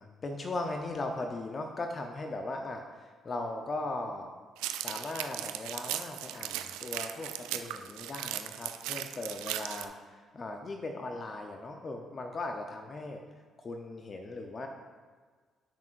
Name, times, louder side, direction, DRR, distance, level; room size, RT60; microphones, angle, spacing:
voice 1, 0.0-4.3 4.8-13.2 13.6-14.7, left 2 dB, 40° left, 4 dB, 0.8 m, -38 dB
sound 1, 4.6-9.9, right 12 dB, 80° right, 0.3 m, -37 dB
11.5 x 6.0 x 2.6 m, 1.5 s
hypercardioid pair, 50°, 0 cm